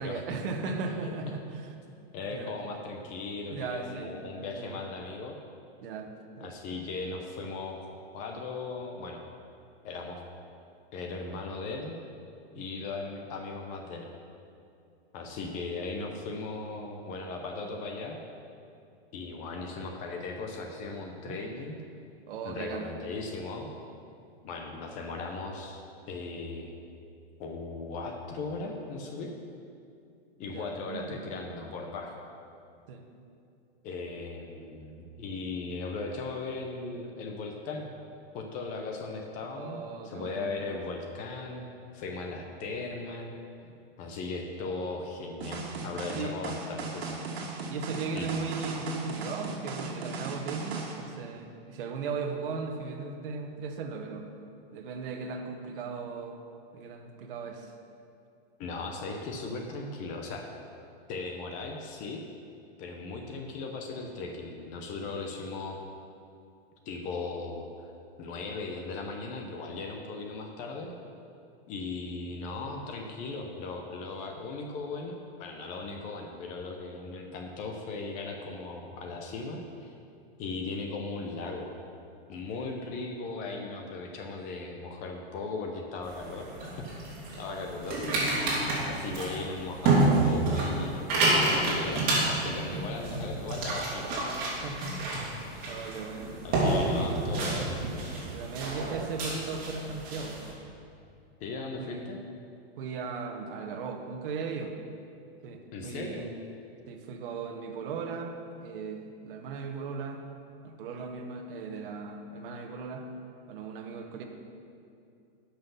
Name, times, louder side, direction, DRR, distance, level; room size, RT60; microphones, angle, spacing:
voice 1, 0.0-1.7 2.3-2.5 3.5-4.1 4.4-4.8 5.8-6.1 6.4-6.5 12.6-12.7 21.2-21.4 22.3-22.9 30.5-31.2 32.9-33.0 39.5-40.5 42.8-42.9 43.6-43.7 45.8-46.4 47.7-54.3 54.7-56.4 56.7-57.7 88.4-88.6 94.6-95.1 95.7-96.4 96.7-97.2 98.3-100.4 101.8-102.1 102.8-104.7 105.4-106.3 106.9-110.2 110.6-113.1 113.5-114.2, right 4 dB, 60° right, 3 dB, 1.1 m, -37 dB
voice 2, 2.1-5.4 6.4-7.9 8.1-9.2 9.8-10.2 10.9-12.0 12.5-14.1 15.1-18.2 19.1-21.8 22.4-23.7 24.4-26.7 27.4-29.3 30.4-32.2 33.8-37.9 38.3-41.7 41.9-43.3 44.0-47.2 48.1-48.3 58.6-60.4 61.1-62.2 62.8-65.8 66.9-67.9 68.2-70.9 71.7-80.0 80.4-81.7 82.3-86.5 87.4-88.2 88.9-94.3 94.9-95.0 96.4-97.8 101.4-102.2 105.7-106.3, left 3 dB, 25° left, 2 dB, 0.6 m, -37 dB
sound 1, 45.4-51.0, right 3 dB, 75° right, 1.7 m, -37 dB
sound 2, 86.0-100.5, right 2 dB, 30° right, 2.5 m, -29 dB
11.0 x 5.8 x 5.6 m, 2.5 s
supercardioid pair, 155°, 31 cm